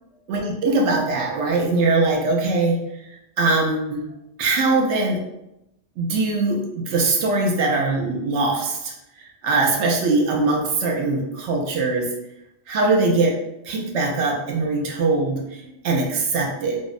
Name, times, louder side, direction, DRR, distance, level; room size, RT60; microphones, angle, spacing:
voice 1, 0.3-2.8 3.4-4.1 4.4-5.2 6.0-8.9 9.4-12.1 12.7-13.3 13.7-16.8, right 3 dB, 75° right, 0 dB, 0.9 m, -21 dB
2.7 x 2.0 x 2.4 m, 0.87 s
omnidirectional pair, 1.2 m